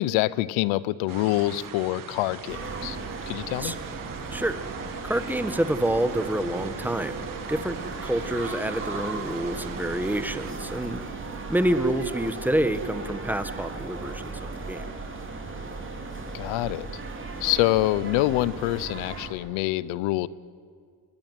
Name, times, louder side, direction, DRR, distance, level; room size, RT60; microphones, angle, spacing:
voice 1, 0.0-3.0 3.3-3.8 16.3-16.9 17.4-20.3, left 17 dB, 85° left, 20 dB, 0.9 m, -26 dB
sound 1, 1.1-10.5, right 8 dB, 45° right, 1.7 m, -41 dB
sound 2, 2.5-19.3, right 3 dB, 25° right, 3.9 m, -36 dB
voice 2, 5.0-7.8 8.0-11.0 11.5-14.8, right 1 dB, 5° right, 11 dB, 1.3 m, -27 dB
23.0 x 21.0 x 9.3 m, 2.1 s
cardioid pair, 115°, 46 cm